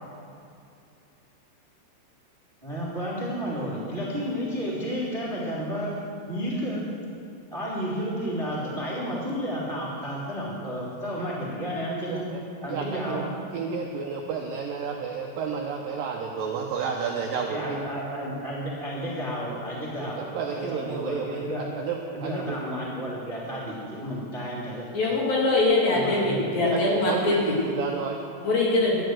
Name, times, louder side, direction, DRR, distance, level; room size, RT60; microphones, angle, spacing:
voice 1, 2.6-6.0 6.3-6.8 7.5-12.3 12.6-13.3 17.1-24.9 25.9-26.6, equal, 20° right, -6 dB, 1.6 m, -32 dB
voice 2, 12.1-12.4 12.7-13.2 13.5-17.8 20.1-21.5 21.8-22.6 26.7-28.2, right 6 dB, 75° right, 1 dB, 2.1 m, -31 dB
voice 3, 24.9-27.5 28.4-29.0, left 2 dB, 60° left, -4 dB, 4.1 m, -23 dB
12.5 x 10.5 x 7.7 m, 2.5 s
omnidirectional pair, 5.0 m